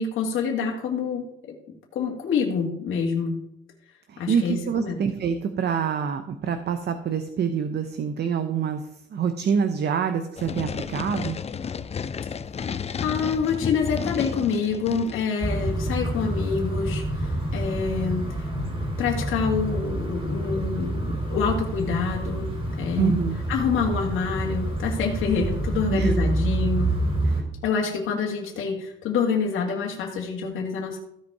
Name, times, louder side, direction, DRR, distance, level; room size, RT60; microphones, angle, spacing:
voice 1, 0.0-1.6 1.9-3.4 4.2-5.0 13.0-18.3 19.0-22.5 22.8-23.1 23.5-27.0 27.6-31.0, left 5 dB, 80° left, -1 dB, 1.9 m, -27 dB
voice 2, 4.1-11.4 23.0-23.4 25.9-26.1 27.2-27.4, right 7 dB, 55° right, 8 dB, 0.9 m, -26 dB
sound 1, 10.4-15.3, left 6 dB, 30° left, 0.5 m, -32 dB
sound 2, 15.4-27.4, right 1 dB, 25° right, 3.3 m, -27 dB
15.0 x 5.3 x 4.8 m, 0.78 s
cardioid pair, 90°, 20 cm